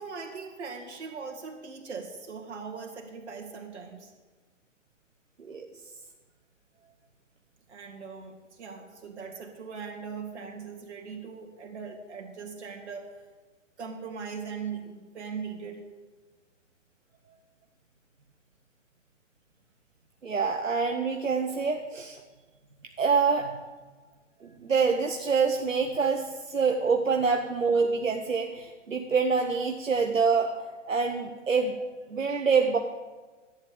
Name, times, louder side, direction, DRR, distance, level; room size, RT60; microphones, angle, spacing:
voice 1, 0.0-4.1 7.7-13.1 13.8-15.8, right 5 dB, 60° right, 1 dB, 2.9 m, -40 dB
voice 2, 20.2-22.2 23.0-23.6 24.4-30.5 30.9-31.7 32.1-32.8, right 5 dB, 85° right, 3 dB, 1.3 m, -26 dB
12.0 x 9.0 x 8.5 m, 1.3 s
figure-of-eight pair, 125°, 38 cm